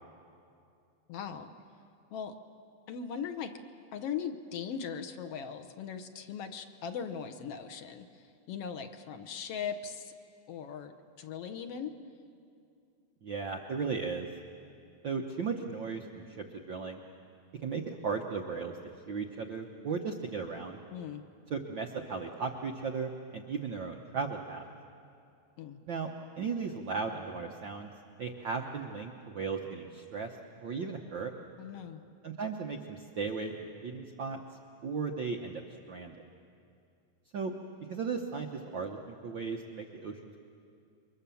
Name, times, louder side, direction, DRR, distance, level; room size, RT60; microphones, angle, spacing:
voice 1, 1.1-1.5 2.1-2.3 2.9-3.5 3.9-8.1 8.5-10.1 10.5-10.9 11.2-11.9 20.9-21.2 25.6-25.8 31.6-32.0, left 7 dB, 65° left, 6 dB, 1.6 m, -39 dB
voice 2, 13.2-14.3 15.0-17.0 17.6-18.7 19.1-20.8 21.5-24.7 25.9-26.1 26.3-27.9 28.2-30.4 30.6-31.3 32.2-34.4 34.8-36.1 37.3-37.5 37.9-40.2, right 5 dB, 85° right, 2 dB, 1.0 m, -36 dB
29.0 x 23.5 x 7.0 m, 2.6 s
omnidirectional pair, 3.6 m